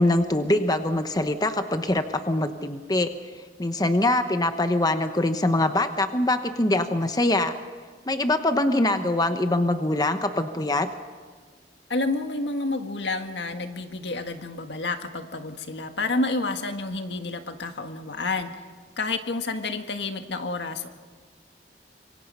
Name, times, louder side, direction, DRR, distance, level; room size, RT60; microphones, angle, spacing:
voice 1, 0.0-3.1 3.6-7.5 8.1-10.9, left 1 dB, 20° left, 8 dB, 1.0 m, -23 dB
voice 2, 11.9-18.5 19.0-20.9, left 3 dB, 80° left, 6 dB, 1.7 m, -29 dB
26.0 x 23.5 x 5.6 m, 1.5 s
head